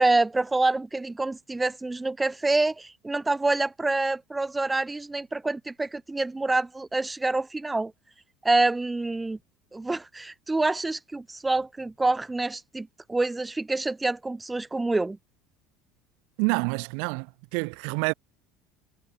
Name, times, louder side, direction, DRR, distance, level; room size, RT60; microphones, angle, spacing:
voice 1, 0.0-7.9 8.4-9.4 9.7-15.2, right 2 dB, 10° right, 0.8 m, -26 dB
voice 2, 16.4-18.1, right 40 dB or more, 70° right, 4.6 m, -27 dB
cardioid pair, 155°, 0 cm